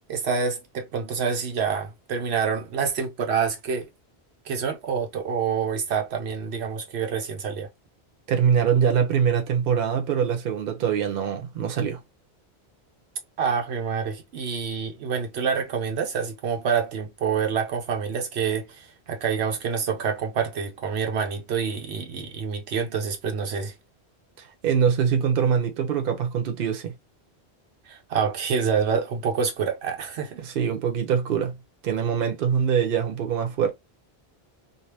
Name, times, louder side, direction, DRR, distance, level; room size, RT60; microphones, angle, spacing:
voice 1, 0.0-3.9 4.5-7.7 13.4-23.7 27.9-30.4, right 6 dB, 85° right, 1.0 m, -27 dB
voice 2, 8.3-12.0 24.4-26.9 30.4-31.5 31.8-33.7, right 7 dB, 60° right, 0.9 m, -23 dB
2.7 x 2.1 x 3.1 m
omnidirectional pair, 1.1 m